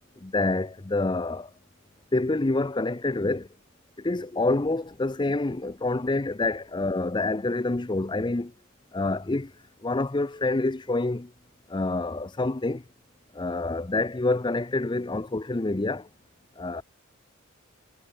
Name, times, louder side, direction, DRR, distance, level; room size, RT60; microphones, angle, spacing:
voice 1, 0.2-1.5 2.1-3.5 4.0-8.5 8.9-9.5 9.8-11.3 11.7-12.8 13.3-16.1 16.6-16.8, left 2 dB, 20° left, 0.5 m, -27 dB
head